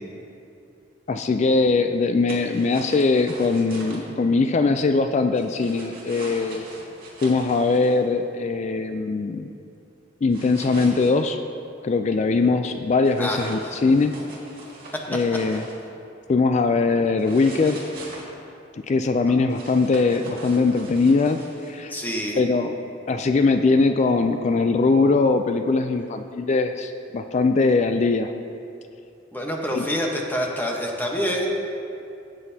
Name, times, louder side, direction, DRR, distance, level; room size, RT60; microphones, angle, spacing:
voice 1, 1.1-6.6 7.2-9.5 10.2-11.4 11.8-14.1 15.1-15.6 16.3-17.8 18.9-21.4 21.7-21.9 22.4-22.8 23.1-28.3 29.7-29.8, left 3 dB, 35° left, 7 dB, 0.3 m, -21 dB
sound 1, 2.3-4.0 5.3-8.0 10.3-11.1 13.0-15.8 17.2-18.2 19.5-21.8, right 2 dB, 50° right, 2.2 m, -42 dB
voice 2, 13.2-13.9 19.3-19.4 21.9-22.4 29.3-31.5, equal, 10° left, 0 dB, 1.0 m, -27 dB
16.5 x 7.8 x 2.8 m, 2.6 s
head